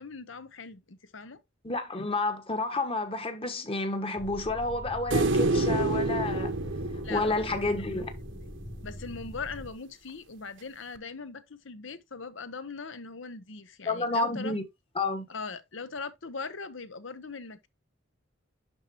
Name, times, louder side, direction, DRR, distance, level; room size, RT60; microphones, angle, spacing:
voice 1, 0.0-1.4 7.0-7.4 8.8-14.5 15.3-17.7, left 4 dB, 70° left, 1.0 m, -40 dB
voice 2, 1.6-6.5 7.1-8.1 13.9-14.6 14.9-15.3, left 2 dB, 30° left, 1.4 m, -30 dB
sound 1, 4.2-9.7, equal, 15° left, 0.7 m, -42 dB
sound 2, 5.1-8.4 11.0-11.1, right 2 dB, 65° right, 1.0 m, -28 dB
11.5 x 4.4 x 2.9 m
head